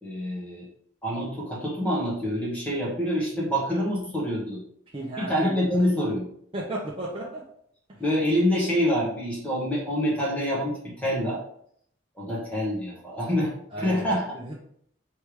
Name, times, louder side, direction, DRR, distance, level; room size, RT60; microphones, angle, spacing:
voice 1, 0.0-0.7 1.0-4.6 5.2-6.3 8.0-11.4 12.1-13.5 13.8-14.4, equal, 5° left, -5 dB, 1.1 m, -26 dB
voice 2, 4.9-5.6 6.5-7.4 13.7-14.0 14.5-14.6, right 1 dB, 25° right, -4 dB, 0.6 m, -33 dB
3.4 x 3.2 x 4.6 m, 0.67 s
head